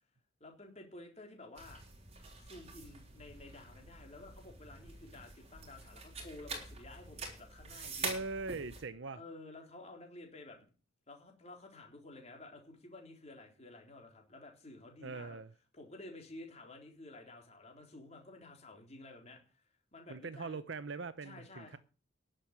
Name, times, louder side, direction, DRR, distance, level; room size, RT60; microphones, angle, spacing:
voice 1, 0.4-1.8 2.4-8.2 9.1-10.7 11.1-15.4 15.7-19.6 19.9-20.6 21.2-21.8, left 2 dB, 30° left, 3.8 m, -52 dB
sound 1, 1.6-8.8, right 4 dB, 30° right, 3.9 m, -46 dB
voice 2, 8.0-9.2 15.0-15.5 20.1-21.8, right 3 dB, 60° right, 0.7 m, -41 dB
11.0 x 7.5 x 9.4 m
head